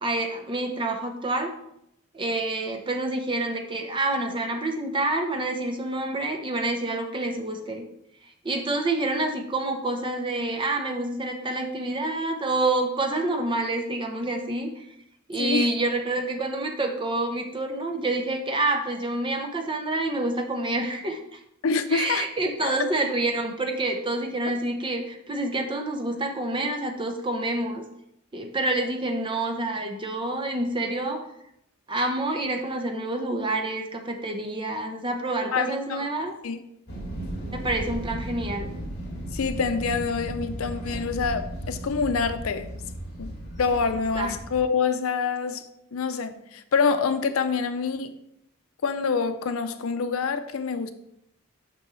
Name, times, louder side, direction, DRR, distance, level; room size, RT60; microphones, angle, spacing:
voice 1, 0.0-1.5 2.1-7.9 8.4-14.8 15.3-21.4 21.9-27.9 28.3-31.2 31.9-36.3 37.5-38.7 44.1-44.4, right 2 dB, 25° right, 0.8 m, -28 dB
voice 2, 15.4-15.7 21.6-22.3 22.6-22.8 35.5-36.0 36.4-36.6 39.3-42.8 43.2-48.2 48.8-50.9, left 5 dB, 85° left, 0.5 m, -26 dB
sound 1, 36.9-44.6, right 1 dB, 55° left, 2.1 m, -35 dB
6.4 x 6.0 x 3.1 m
head